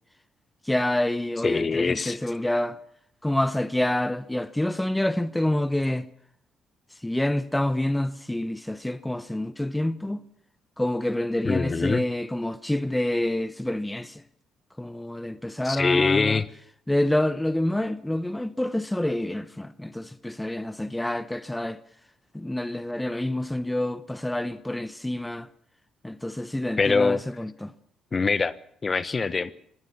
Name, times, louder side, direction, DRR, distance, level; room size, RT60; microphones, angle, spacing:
voice 1, 0.6-2.8 3.2-6.1 7.0-10.2 10.8-14.2 14.8-16.4 16.9-21.8 22.3-25.5 26.0-27.7, left 1 dB, 10° left, 0.9 m, -27 dB
voice 2, 1.4-2.2 11.4-12.0 15.6-16.5 26.8-27.2 28.1-28.5 28.8-29.5, left 4 dB, 30° left, 1.1 m, -23 dB
24.5 x 18.0 x 7.3 m
cardioid pair, 95°, 0 cm